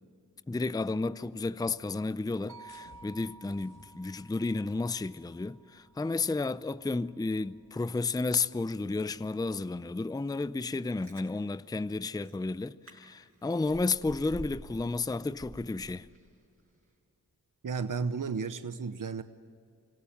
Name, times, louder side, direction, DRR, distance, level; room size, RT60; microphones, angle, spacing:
voice 1, 0.5-16.1, left 3 dB, 10° left, 0.5 m, -32 dB
sound 1, 2.5-6.7, right 4 dB, 90° right, 1.5 m, -54 dB
sound 2, 2.7-8.7, left 2 dB, 70° left, 3.7 m, -64 dB
Chewing mastication, 10.8-11.3 11.9-12.0 12.2-12.4 12.8-12.9 13.3-14.8 15.1-16.4 16.7-16.8, right 2 dB, 35° right, 5.7 m, -47 dB
voice 2, 17.6-19.2, right 5 dB, 55° right, 0.9 m, -33 dB
26.0 x 17.0 x 9.0 m
wide cardioid pair, 55°, 37 cm